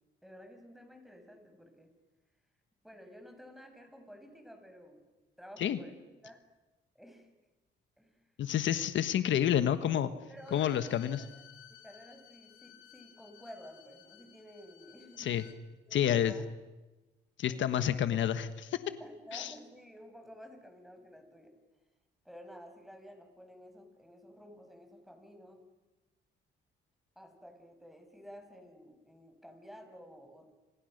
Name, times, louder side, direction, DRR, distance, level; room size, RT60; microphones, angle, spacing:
voice 1, 0.2-1.9 2.8-5.0 5.4-6.4 6.9-7.3 8.0-8.2 8.7-8.8 10.3-10.9 11.2-11.4 11.7-15.5 15.8-16.5 17.5-17.8 19.0-21.5 22.2-25.6 27.1-30.5, equal, ahead, 5 dB, 6.6 m, -52 dB
voice 2, 8.4-10.1 10.5-11.2 15.2-15.4 15.9-16.3 17.4-18.8 19.3-19.5, left 10 dB, 70° left, 10 dB, 1.4 m, -29 dB
Bowed string instrument, 10.4-15.6, left 11 dB, 85° left, 4.6 m, -57 dB
29.5 x 27.0 x 6.7 m, 1.1 s
cardioid pair, 90°, 20 cm